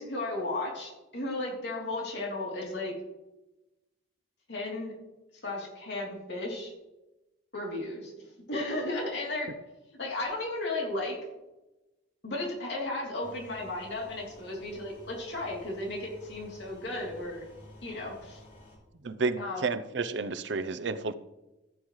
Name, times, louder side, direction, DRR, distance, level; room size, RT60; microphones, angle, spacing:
voice 1, 0.0-2.9 4.5-4.9 5.4-6.7 7.5-9.5 10.0-11.2 12.2-17.4 17.8-18.4 19.4-19.6, left 2 dB, 60° left, -2 dB, 3.1 m, -34 dB
sound 1, 13.2-18.8, left 1 dB, 45° left, 4.3 m, -52 dB
voice 2, 19.0-21.1, right 4 dB, 70° right, 11 dB, 0.6 m, -31 dB
15.0 x 8.9 x 3.2 m, 1.0 s
head